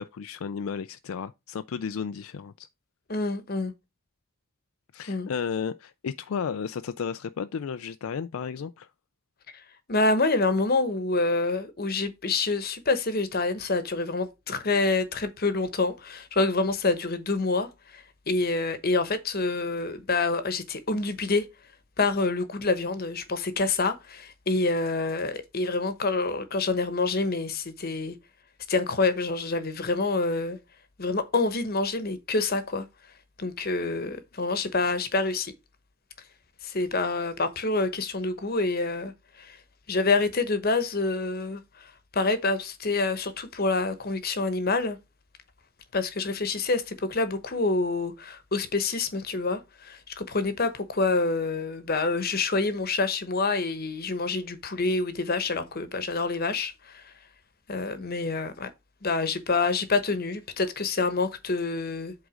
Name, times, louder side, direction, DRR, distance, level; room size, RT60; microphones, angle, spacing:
voice 1, 0.0-2.7 4.9-8.9, left 6 dB, 70° left, 0.4 m, -33 dB
voice 2, 3.1-3.7 5.1-5.3 9.9-21.5 22.0-28.2 28.7-30.6 31.0-32.9 33.4-35.5 36.6-39.1 39.4-39.6 39.9-45.0 45.9-57.1 57.7-58.7 59.0-62.1, left 3 dB, 45° left, 1.0 m, -27 dB
7.9 x 3.8 x 4.9 m
head